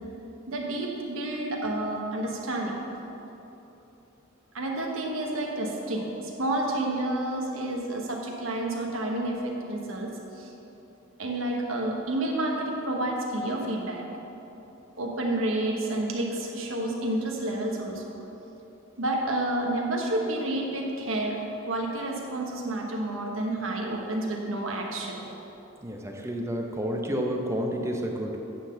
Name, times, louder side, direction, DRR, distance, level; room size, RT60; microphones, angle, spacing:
voice 1, 0.5-2.7 4.5-10.1 10.4-10.5 11.2-14.1 15.0-18.1 19.0-21.4 21.6-25.2, right 1 dB, 80° right, 0 dB, 1.2 m, -30 dB
voice 2, 25.8-28.4, equal, 15° right, 1 dB, 0.7 m, -30 dB
8.9 x 3.8 x 6.5 m, 2.9 s
head